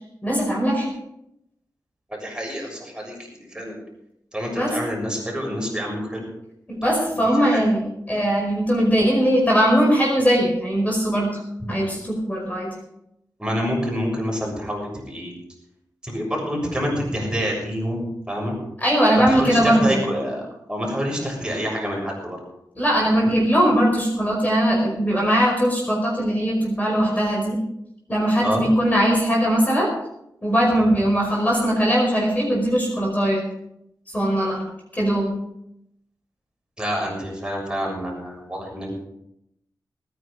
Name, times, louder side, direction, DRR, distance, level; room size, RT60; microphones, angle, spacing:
voice 1, 0.2-0.9 4.6-4.8 6.7-11.4 11.7-12.7 18.8-20.0 22.8-27.6 28.1-29.9 30.4-33.4 34.1-34.6 35.0-35.3, equal, 20° left, -2 dB, 5.2 m, -20 dB
voice 2, 2.1-3.2 3.5-3.7 4.3-6.2 7.2-7.6 13.4-15.3 16.0-18.6 19.3-20.4 20.7-22.4 23.1-23.3 28.4-28.6 36.8-38.9, equal, 10° right, -2 dB, 6.8 m, -27 dB
19.5 x 10.0 x 5.1 m, 0.80 s
wide cardioid pair, 75°, 7 cm